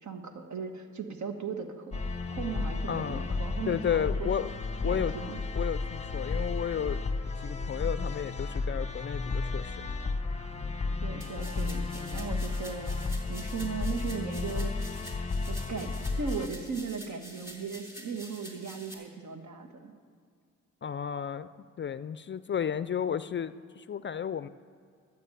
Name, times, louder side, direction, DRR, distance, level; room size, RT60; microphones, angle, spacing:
voice 1, 0.0-4.3 4.8-5.4 11.0-14.9 15.5-19.9, right 5 dB, 60° right, 6 dB, 1.5 m, -37 dB
sound 1, 1.9-16.5, left 3 dB, 20° left, 0.9 m, -33 dB
voice 2, 2.9-3.2 3.7-4.5 4.8-5.1 5.5-7.0 7.4-9.9 20.8-21.5 21.8-24.5, left 8 dB, 35° left, 15 dB, 0.4 m, -33 dB
sound 2, 11.2-18.9, equal, 10° right, 3.7 m, -48 dB
13.0 x 6.4 x 8.6 m, 2.2 s
supercardioid pair, 55°, 33 cm